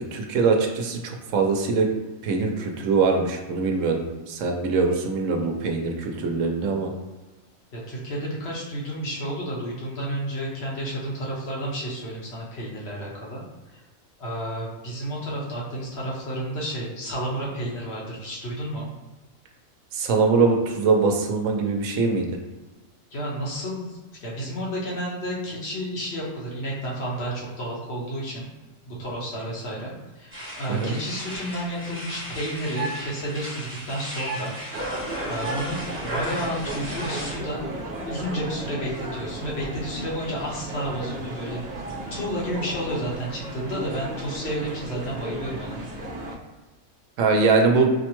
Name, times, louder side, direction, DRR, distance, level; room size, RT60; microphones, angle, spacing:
voice 1, 0.1-1.9 2.2-6.9 19.9-22.3 30.7-30.9 47.2-47.9, right 4 dB, 75° right, 3 dB, 0.9 m, -22 dB
voice 2, 7.7-13.4 13.7-13.8 14.2-18.9 23.1-28.5 28.9-34.5 35.3-35.8 36.0-37.7 38.0-41.6 42.1-45.8, equal, 55° left, -4 dB, 1.2 m, -31 dB
sound 1, 30.3-37.4, right 1 dB, 10° right, 1.0 m, -34 dB
sound 2, 34.7-46.4, right 1 dB, 40° right, 0.8 m, -35 dB
4.7 x 2.1 x 3.0 m, 1.1 s
omnidirectional pair, 1.4 m